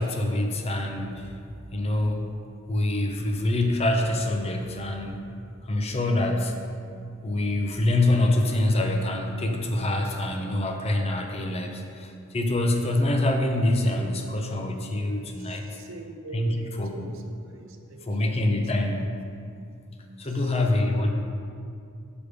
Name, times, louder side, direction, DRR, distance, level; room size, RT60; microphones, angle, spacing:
voice 1, 0.0-1.3 1.7-2.3 2.7-5.3 5.6-6.6 7.2-15.7 16.3-16.5 16.8-17.1 18.1-19.0 20.2-21.1, left 1 dB, 30° left, 3 dB, 0.6 m, -25 dB
voice 2, 15.3-19.0 20.0-20.6, right 2 dB, 75° right, 5 dB, 0.6 m, -45 dB
6.5 x 5.1 x 4.9 m, 2.4 s
head